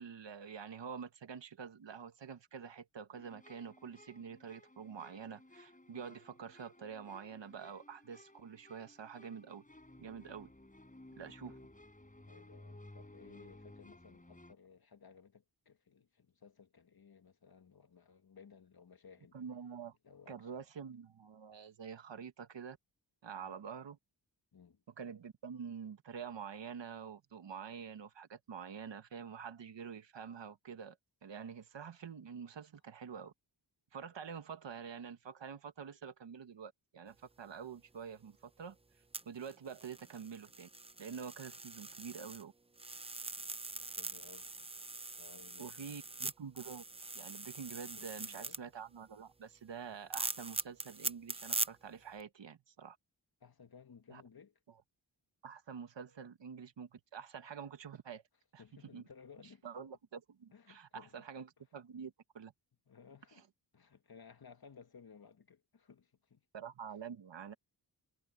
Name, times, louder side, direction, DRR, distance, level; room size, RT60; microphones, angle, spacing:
voice 1, 0.0-9.6 10.0-10.5 11.2-11.5 19.3-20.0 20.3-22.8 23.2-24.0 25.0-33.3 33.9-38.8 39.2-40.7 41.0-42.5 45.6-46.8 47.1-53.0 54.1-54.2 55.4-58.2 58.5-58.6 58.9-59.0 59.6-61.5 61.7-62.5 66.5-67.5, right 7 dB, 75° right, 1.7 m, -47 dB
sound 1, 3.1-14.5, left 1 dB, 20° left, 5.0 m, -58 dB
voice 2, 12.2-19.4 20.0-20.6 23.4-23.6 24.5-24.8 43.8-44.5 45.2-46.0 47.9-48.6 53.4-54.5 58.6-59.7 60.5-61.3 62.9-63.5 63.7-66.4, left 6 dB, 55° left, 2.1 m, -59 dB
sound 2, 39.1-42.4 42.8-48.6 50.1-51.7 52.2-52.3, right 3 dB, 15° right, 0.6 m, -42 dB
cardioid pair, 55°, 44 cm